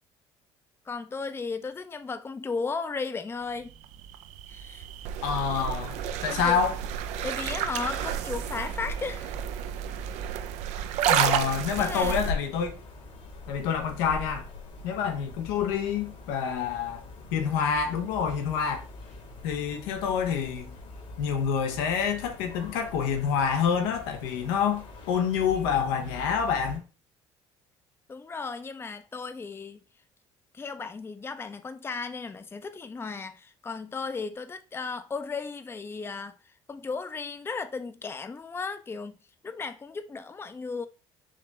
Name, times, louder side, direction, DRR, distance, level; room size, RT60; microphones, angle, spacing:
voice 1, 0.9-3.7 4.5-4.9 6.3-6.7 7.2-9.3 11.8-12.3 28.1-29.8 30.5-39.2 39.4-40.9, left 4 dB, 20° left, 0.5 m, -35 dB
sound 1, 3.6-12.3, right 10 dB, 75° right, 0.5 m, -31 dB
voice 2, 5.2-5.9 6.2-6.7 11.1-12.8 13.5-14.4 14.8-17.0 17.3-18.9 19.4-20.7 21.2-26.8, left 7 dB, 90° left, 0.9 m, -27 dB
sound 2, 11.6-26.8, left 3 dB, 70° left, 1.8 m, -42 dB
4.9 x 2.9 x 3.5 m
supercardioid pair, 75°, 12 cm